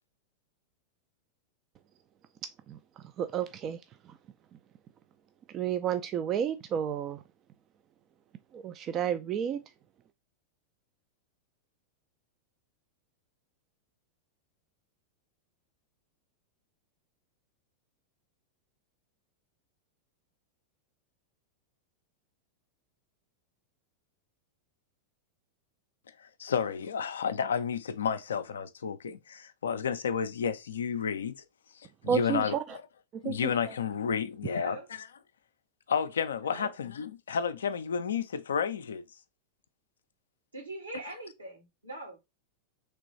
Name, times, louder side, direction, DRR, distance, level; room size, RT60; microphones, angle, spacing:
voice 1, 3.2-3.8 5.5-7.2 8.5-9.6 32.0-32.6 33.2-33.5, right 8 dB, 30° right, 0.3 m, -31 dB
voice 2, 26.2-31.4 31.7-32.8 33.2-35.0 35.9-39.1, left 7 dB, 65° left, 0.4 m, -31 dB
voice 3, 34.5-34.9 36.4-36.7 40.5-42.2, right 2 dB, 80° right, 1.5 m, -42 dB
3.3 x 3.0 x 3.9 m
figure-of-eight pair, 90°, 0 cm